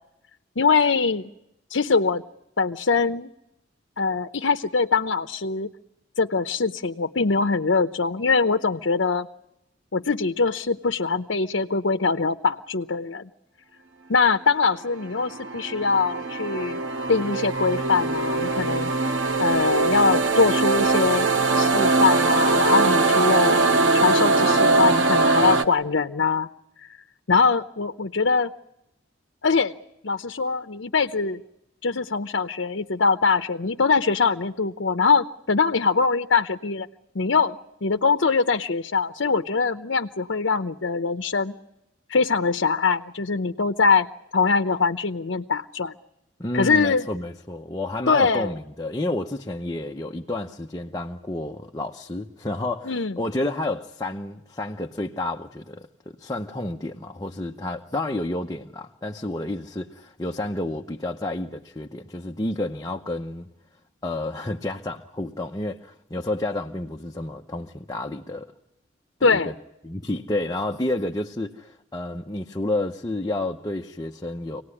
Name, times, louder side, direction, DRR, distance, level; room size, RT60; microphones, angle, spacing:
voice 1, 0.6-1.3 1.7-2.2 2.6-3.3 4.0-5.7 6.2-9.3 9.9-13.3 14.1-16.8 17.1-18.9 19.4-21.3 21.6-23.6 23.9-26.5 26.8-26.9 27.3-28.5 29.4-29.7 30.0-31.4 31.8-36.9 37.1-37.6 37.8-41.6 42.1-44.1 44.3-45.9 46.5-47.1 48.1-48.5 52.8-53.1 69.2-69.6, left 4 dB, 75° left, 0.8 m, -22 dB
sound 1, 14.9-25.6, right 3 dB, 80° right, 1.7 m, -21 dB
voice 2, 46.4-55.9 56.2-63.5 64.0-68.5 69.2-69.5 69.8-74.6, left 2 dB, 20° left, 0.8 m, -30 dB
26.0 x 18.5 x 9.8 m
head